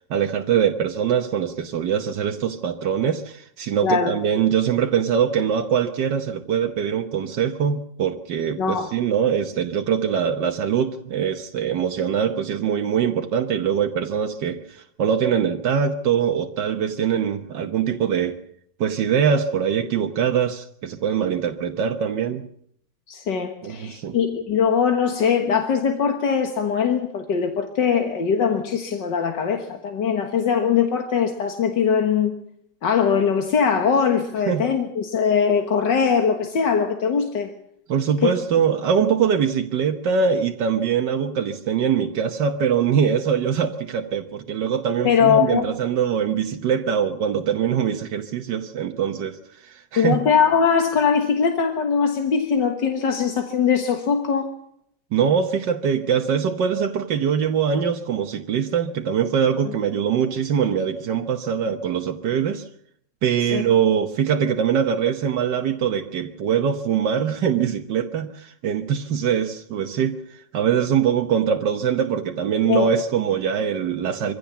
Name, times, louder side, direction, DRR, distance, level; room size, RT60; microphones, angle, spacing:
voice 1, 0.1-18.4 18.8-22.5 23.6-24.2 34.5-34.6 37.9-50.2 55.1-62.7 63.2-74.3, right 7 dB, 80° right, 1.7 m, -23 dB
voice 2, 3.8-4.2 8.6-8.9 23.1-32.4 32.8-37.5 38.2-38.3 45.0-45.7 50.0-54.5 63.5-63.6 72.7-72.9, left 6 dB, 85° left, 2.2 m, -21 dB
23.5 x 16.0 x 7.1 m
omnidirectional pair, 1.9 m